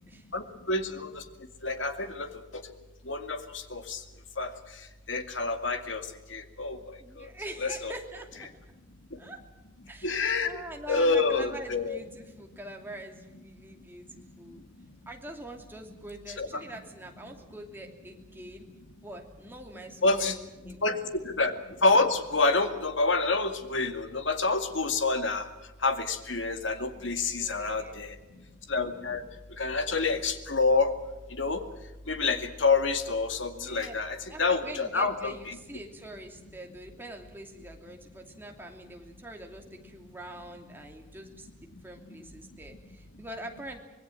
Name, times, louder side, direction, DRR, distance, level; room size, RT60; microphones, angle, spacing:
voice 1, 0.3-1.2 1.6-2.3 2.5-2.6 3.1-3.4 3.7-4.0 4.4-4.5 5.1-6.0 6.3-6.8 7.2-7.3 7.6-7.9 10.0-10.5 10.9-12.0 16.4-16.5 20.0-20.4 20.6-21.0 21.2-21.5 21.8-25.5 25.8-28.2 28.7-29.2 29.6-30.9 31.4-31.6 32.1-35.6, left 3 dB, 80° left, 7 dB, 2.3 m, -27 dB
voice 2, 7.0-8.5 9.2-9.4 9.9-14.7 15.1-18.6 19.0-20.8 26.9-28.0 33.5-34.0 34.2-41.5 41.8-43.8, right 1 dB, 10° right, 2 dB, 2.8 m, -44 dB
25.5 x 20.5 x 7.6 m, 1.1 s
head